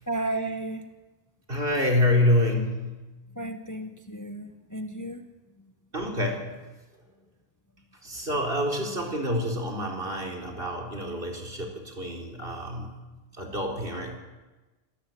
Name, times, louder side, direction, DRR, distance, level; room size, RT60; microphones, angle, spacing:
voice 1, 0.1-0.9 3.3-5.7 11.6-11.7, right 2 dB, 15° left, 7 dB, 1.1 m, -34 dB
voice 2, 1.5-3.1 5.9-6.6 8.0-13.0 13.4-14.2, left 1 dB, 60° right, 1 dB, 4.1 m, -27 dB
26.0 x 13.5 x 9.2 m, 1.2 s
omnidirectional pair, 1.1 m